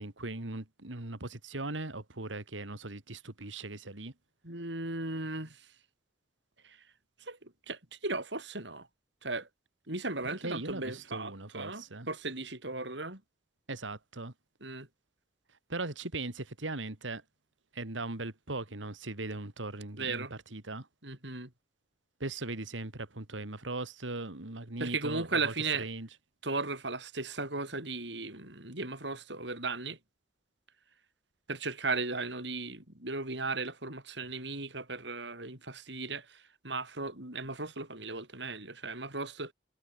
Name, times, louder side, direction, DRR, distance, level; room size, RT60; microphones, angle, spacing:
voice 1, 0.0-4.1 10.4-12.1 13.7-14.3 15.7-17.2 17.7-20.9 22.2-26.1, right 2 dB, 85° right, 2.5 m, -39 dB
voice 2, 4.4-5.7 6.6-6.8 7.2-8.9 9.2-9.5 9.9-13.2 14.6-14.9 20.0-20.3 21.0-21.5 24.8-25.9 26.4-30.0 31.5-39.5, right 3 dB, 65° right, 6.7 m, -36 dB
head